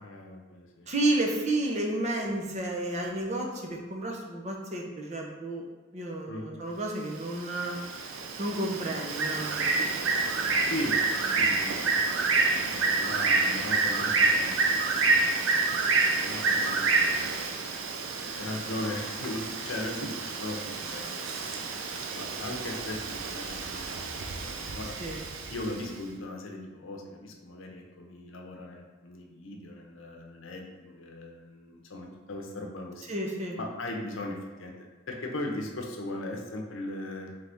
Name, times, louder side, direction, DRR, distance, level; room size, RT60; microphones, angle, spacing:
voice 1, 0.0-0.9 6.3-6.8 10.7-11.0 11.4-17.4 18.2-24.9 25.5-33.1 33.6-34.7 35.1-37.3, left 1 dB, 75° left, 1 dB, 0.7 m, -39 dB
voice 2, 0.9-5.6 5.9-7.8 8.4-9.8 25.0-25.2 33.1-33.6, right 1 dB, 35° right, 0 dB, 0.6 m, -31 dB
Bird, 7.1-25.8, right 3 dB, 80° right, 0.5 m, -28 dB
3.9 x 3.4 x 3.4 m, 1.3 s
head